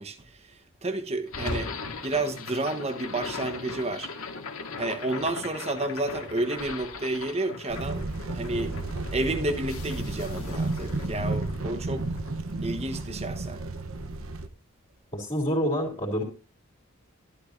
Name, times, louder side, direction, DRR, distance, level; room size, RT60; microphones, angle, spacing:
voice 1, 0.0-1.7 2.0-4.1 4.8-8.7 9.1-12.1 12.6-13.6, right 2 dB, 30° right, 1.1 m, -31 dB
sound 1, 1.3-13.5, left 3 dB, 85° left, 1.9 m, -39 dB
sound 2, 7.7-14.5, right 2 dB, 70° right, 1.0 m, -32 dB
voice 2, 15.1-16.2, equal, 30° left, 3.2 m, -27 dB
12.5 x 11.5 x 2.6 m
head